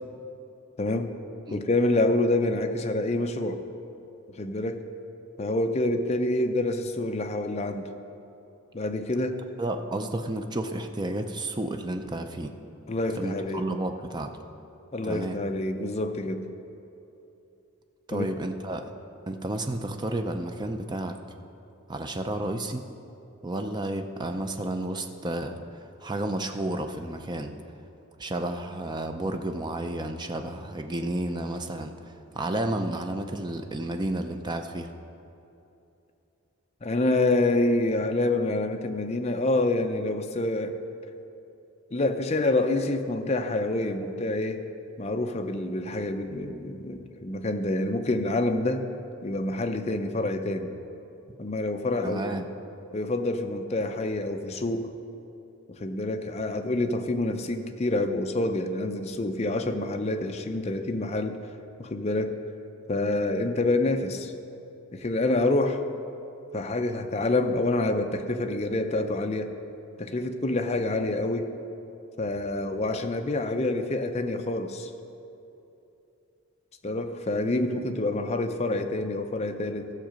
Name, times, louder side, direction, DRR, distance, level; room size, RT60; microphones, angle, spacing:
voice 1, 0.8-1.1 1.5-3.6 4.3-4.9 5.4-7.9 8.7-9.4 12.9-13.6 14.9-16.5 18.1-18.3 36.8-40.8 41.9-44.6 45.0-48.9 49.2-50.7 51.4-52.4 52.9-54.9 55.7-61.4 61.8-62.4 62.9-64.3 64.9-65.8 66.5-69.5 70.0-71.5 72.2-74.9 76.8-79.9, left 2 dB, 30° left, 6 dB, 0.5 m, -27 dB
voice 2, 9.6-12.5 13.2-14.3 15.0-15.4 18.1-18.9 19.3-21.2 21.9-22.9 23.4-27.5 28.2-34.9 52.0-52.5, right 1 dB, 20° right, 6 dB, 0.5 m, -31 dB
14.5 x 6.4 x 5.1 m, 2.8 s
head